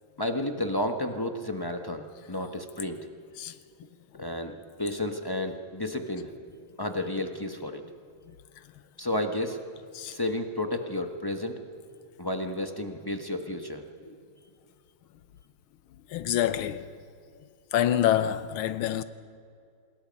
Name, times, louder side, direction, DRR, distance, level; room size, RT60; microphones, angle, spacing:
voice 1, 0.2-3.0 4.2-6.4 6.8-7.8 9.0-9.6 10.1-11.5 12.2-14.2, left 1 dB, 15° left, 0.9 m, -32 dB
voice 2, 16.1-17.0 17.7-19.0, left 11 dB, 80° left, 1.7 m, -27 dB
26.5 x 21.0 x 5.4 m
omnidirectional pair, 2.3 m